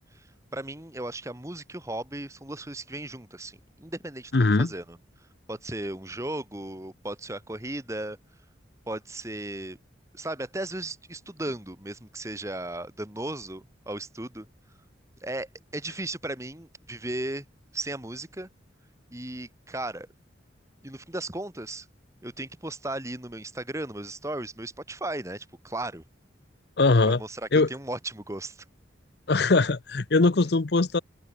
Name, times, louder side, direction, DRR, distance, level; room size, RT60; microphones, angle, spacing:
voice 1, 0.5-4.3 4.6-5.0 5.5-8.2 8.9-9.8 10.1-14.5 15.2-17.4 17.7-18.5 19.1-20.1 20.8-21.9 22.2-26.0 27.2-28.6, right 1 dB, 15° right, 1.8 m, -36 dB
voice 2, 4.3-4.7 26.8-27.2 27.5-27.7 29.3-31.0, left 3 dB, 55° left, 0.7 m, -21 dB
head